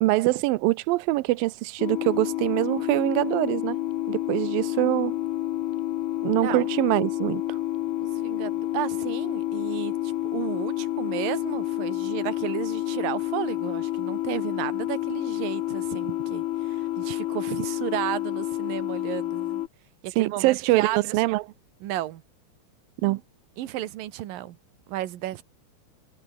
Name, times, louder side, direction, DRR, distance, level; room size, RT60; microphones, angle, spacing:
voice 1, 0.0-3.8 4.1-5.2 6.2-7.6 20.2-21.4 23.0-23.2, right 19 dB, 85° right, 2.1 m, -24 dB
sound 1, 1.8-19.7, left 14 dB, 80° left, 1.6 m, -29 dB
voice 2, 8.0-19.6 20.0-21.2 21.8-22.2 23.6-24.6 24.9-25.4, right 14 dB, 65° right, 2.7 m, -33 dB
omnidirectional pair, 4.8 m